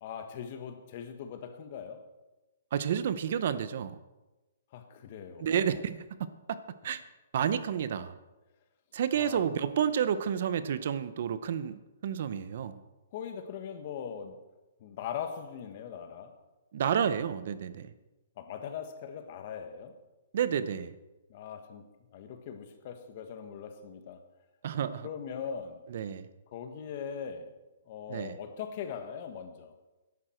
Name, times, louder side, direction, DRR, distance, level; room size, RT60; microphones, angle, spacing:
voice 1, 0.0-2.1 4.7-5.8 9.1-9.5 13.1-14.4 14.8-16.4 18.4-20.0 21.3-21.8 22.1-24.2 25.0-25.9 26.5-27.5 27.9-29.7, left 7 dB, 35° left, 1.4 m, -40 dB
voice 2, 2.7-4.0 5.4-6.3 6.8-7.0 7.3-8.2 8.9-12.8 16.7-17.9 20.3-21.0 24.6-25.1 25.9-26.3 28.1-28.4, right 8 dB, 50° right, 0.7 m, -30 dB
14.0 x 11.5 x 4.4 m
hypercardioid pair, 165°, 0 cm